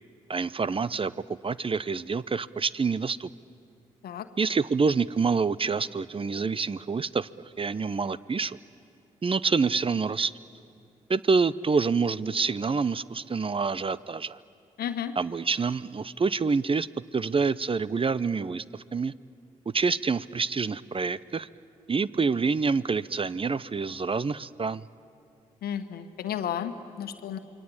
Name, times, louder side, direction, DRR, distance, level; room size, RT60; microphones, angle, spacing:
voice 1, 0.3-1.1 1.4-3.3 4.4-7.3 7.6-8.6 9.2-10.3 11.1-14.4 15.2-16.9 17.1-19.1 19.7-21.5 21.9-24.9, right 4 dB, 35° right, 18 dB, 0.7 m, -27 dB
voice 2, 14.8-15.1 25.6-27.4, left 9 dB, 75° left, 9 dB, 1.3 m, -33 dB
28.0 x 22.0 x 8.8 m, 2.5 s
hypercardioid pair, 40°, 16 cm